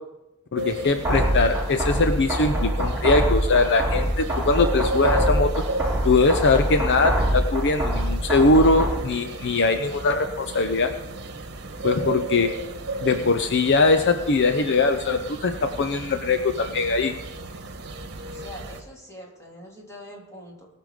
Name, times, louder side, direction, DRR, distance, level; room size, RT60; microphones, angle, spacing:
voice 1, 0.5-5.5 6.0-10.9 11.8-12.5 13.0-17.1, left 3 dB, 55° left, 8 dB, 0.7 m, -21 dB
sound 1, 0.6-18.8, right 2 dB, 50° right, 1.3 m, -34 dB
sound 2, 1.0-9.0, equal, 10° right, 2.3 m, -25 dB
voice 2, 18.3-20.7, left 1 dB, 15° left, -2 dB, 3.2 m, -43 dB
20.0 x 6.7 x 5.0 m, 0.94 s
head